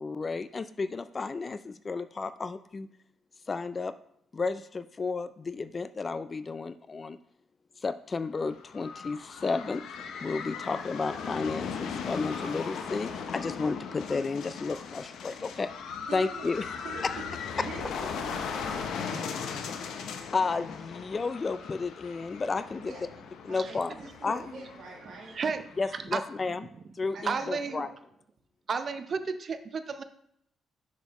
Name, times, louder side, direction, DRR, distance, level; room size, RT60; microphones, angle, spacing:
voice 1, 0.0-2.9 3.5-3.9 4.3-7.2 7.8-9.8 10.2-15.7 16.1-16.6 20.3-22.9 23.4-23.9 24.2-24.4 25.8-26.7 27.0-27.9, left 4 dB, 35° left, 13 dB, 0.3 m, -32 dB
sound 1, 8.4-26.0, left 6 dB, 80° left, 0.7 m, -38 dB
voice 2, 16.0-19.3 22.8-23.0 23.5-25.4 27.1-28.0, right 4 dB, 65° right, -3 dB, 1.4 m, -45 dB
voice 3, 27.2-27.9 28.7-30.0, right 5 dB, 45° right, 9 dB, 0.6 m, -32 dB
6.8 x 6.2 x 3.0 m, 0.71 s
cardioid pair, 90°, 0 cm